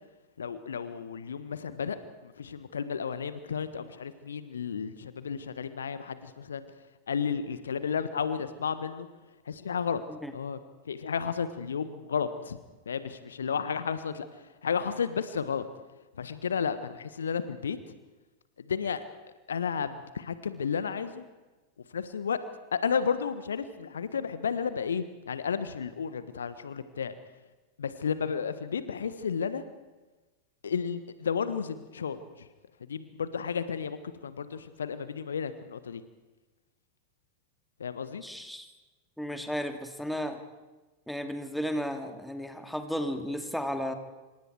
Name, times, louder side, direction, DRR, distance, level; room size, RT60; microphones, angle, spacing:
voice 1, 0.4-2.0 2.2-6.6 7.1-9.1 9.5-10.0 10.3-10.6 10.9-12.6 12.9-14.3 14.6-15.7 16.2-17.8 18.6-19.0 19.5-21.2 21.9-22.4 22.7-27.1 27.8-29.6 30.6-32.5 32.9-36.0 37.8-38.2, left 6 dB, 70° left, 13 dB, 1.3 m, -32 dB
voice 2, 38.2-38.7 39.2-40.4 41.1-43.9, equal, ahead, 6 dB, 2.5 m, -34 dB
27.5 x 25.5 x 4.7 m, 1.2 s
figure-of-eight pair, 90°, 0 cm